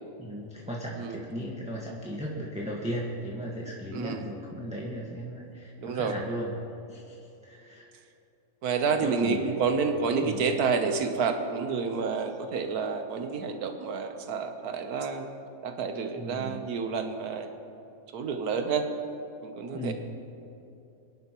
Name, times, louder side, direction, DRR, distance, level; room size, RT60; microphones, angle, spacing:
voice 1, 0.2-6.5 6.9-7.9 9.0-9.5 10.2-10.4 16.2-16.7 19.7-19.9, equal, 5° right, -4 dB, 1.4 m, -36 dB
voice 2, 3.9-4.2 5.8-6.2 8.6-15.3 15.6-17.5 18.1-18.9 19.4-19.9, right 5 dB, 90° right, 6 dB, 1.4 m, -29 dB
24.0 x 11.0 x 3.0 m, 2.8 s
omnidirectional pair, 1.6 m